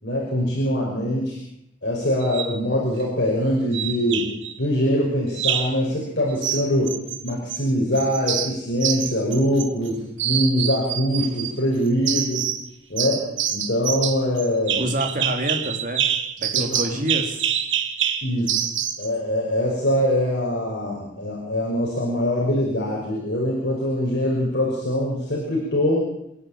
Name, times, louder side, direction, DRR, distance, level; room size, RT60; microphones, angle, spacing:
voice 1, 0.0-1.4 1.8-4.3 4.6-7.0 7.2-12.5 12.9-14.8 16.7-16.8 18.2-18.5 19.0-26.1, equal, 60° left, -3 dB, 5.8 m, -23 dB
sound 1, 2.2-2.6 3.7-4.5 5.4-5.8 6.4-7.6 8.0-9.9 10.2-11.5 12.1-12.7 13.0-19.1, right 9 dB, 75° right, 1.9 m, -26 dB
voice 2, 14.8-16.0 16.4-17.5, right 1 dB, 45° right, 4 dB, 3.4 m, -27 dB
27.5 x 11.0 x 8.9 m, 0.81 s
head